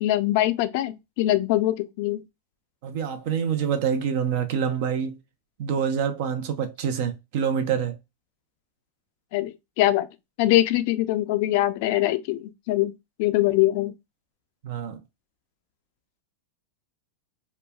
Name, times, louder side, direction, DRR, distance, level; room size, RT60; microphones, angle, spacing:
voice 1, 0.0-2.2 9.3-10.1 10.4-12.9 13.2-13.9, left 15 dB, 55° left, 0.4 m, -23 dB
voice 2, 2.8-5.2 5.6-8.0 14.6-15.0, right 7 dB, 60° right, 0.6 m, -26 dB
3.1 x 2.1 x 2.3 m
supercardioid pair, 130°, 0 cm